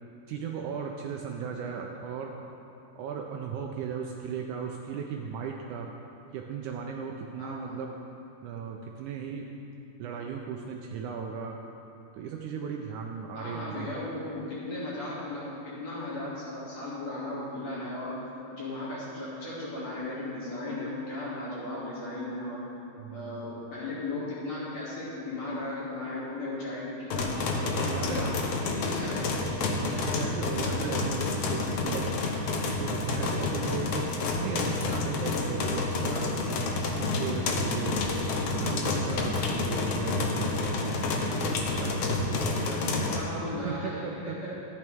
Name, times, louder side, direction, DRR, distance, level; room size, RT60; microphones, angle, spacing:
voice 1, 0.3-2.3 3.0-5.9 6.3-7.9 8.4-9.5 10.0-11.6 12.2-13.9 23.0-23.5 27.5-28.3 29.8-32.1 32.6-34.1 34.4-36.6 37.0-38.2 38.5-43.0 43.5-44.4, right 6 dB, 80° right, 1 dB, 1.9 m, -36 dB
voice 2, 7.4-7.8 13.3-18.2 18.6-22.6 23.1-27.4 27.7-29.4 43.0-44.6, left 2 dB, 50° left, -9 dB, 3.7 m, -36 dB
sound 1, 27.1-43.2, left 3 dB, 90° left, 1.3 m, -29 dB
13.5 x 9.4 x 3.5 m, 2.8 s
omnidirectional pair, 3.9 m